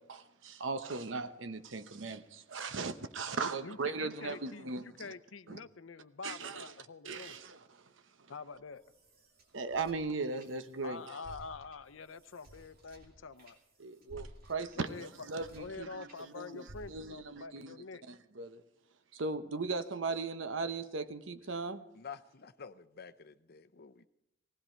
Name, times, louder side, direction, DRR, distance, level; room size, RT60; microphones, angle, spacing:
voice 1, 0.0-5.1 5.5-5.6 6.2-6.6 7.0-7.6 9.5-11.0 13.8-17.7 18.1-18.6 19.1-21.8, right 3 dB, 75° right, 0.9 m, -38 dB
voice 2, 3.4-7.4 8.3-8.8 10.8-13.6 14.8-15.3 15.5-18.0, left 4 dB, 90° left, 0.7 m, -46 dB
sound 1, 8.5-10.9 11.2-16.2 16.7-17.4, right 1 dB, 50° right, 2.6 m, -56 dB
voice 3, 21.9-24.1, left 6 dB, 55° left, 0.7 m, -49 dB
19.0 x 16.0 x 4.5 m
head